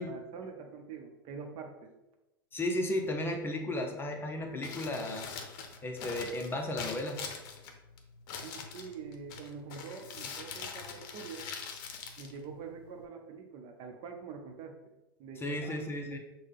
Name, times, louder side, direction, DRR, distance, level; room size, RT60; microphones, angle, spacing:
voice 1, 0.0-1.9 8.4-11.4 12.2-16.2, right 5 dB, 45° right, 3 dB, 0.8 m, -45 dB
voice 2, 2.5-5.3 5.8-7.2 15.4-16.2, left 1 dB, 20° left, 2 dB, 0.7 m, -34 dB
Crumpling crinkling, 4.5-13.0, left 5 dB, 55° left, 0.7 m, -44 dB
6.4 x 2.2 x 3.6 m, 0.97 s
hypercardioid pair, 90°, 12 cm